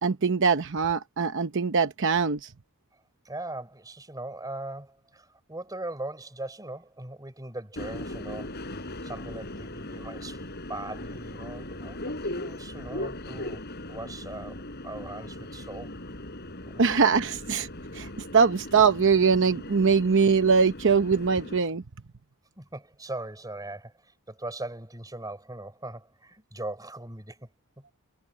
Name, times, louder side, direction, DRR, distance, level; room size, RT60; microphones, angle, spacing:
voice 1, 0.0-2.5 16.8-17.7 17.9-21.8, right 5 dB, 60° right, 0.8 m, -22 dB
voice 2, 2.9-10.4 10.7-14.6 14.8-15.9 16.6-16.9 22.6-27.8, right 2 dB, 15° right, 4.5 m, -40 dB
Subway metro underground, 7.8-21.6, left 1 dB, 50° left, 5.0 m, -38 dB
head